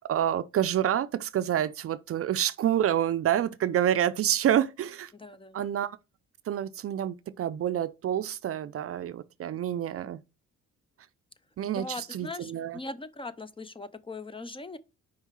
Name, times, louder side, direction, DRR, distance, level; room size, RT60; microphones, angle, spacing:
voice 1, 0.1-5.1 5.5-6.0 6.5-10.2 11.6-12.8, right 10 dB, 50° right, 0.5 m, -28 dB
voice 2, 5.1-5.6 11.7-14.8, left 2 dB, 20° left, 0.5 m, -40 dB
5.5 x 4.6 x 4.7 m
cardioid pair, 90°, 30 cm